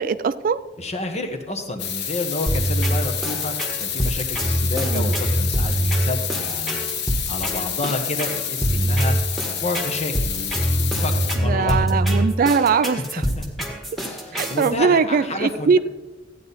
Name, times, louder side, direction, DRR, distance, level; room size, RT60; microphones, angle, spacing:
voice 1, 0.0-0.6 4.7-5.2 11.4-13.3 14.3-15.8, right 5 dB, 50° right, 15 dB, 0.3 m, -21 dB
voice 2, 0.8-6.8 7.1-9.2 9.5-12.0 13.4-13.7 14.0-15.8, left 2 dB, 35° left, 5 dB, 1.4 m, -30 dB
sound 1, 1.8-11.4, left 9 dB, 60° left, 1.0 m, -29 dB
sound 2, 2.5-14.7, equal, ahead, 1.6 m, -24 dB
14.0 x 9.4 x 4.2 m, 1.2 s
head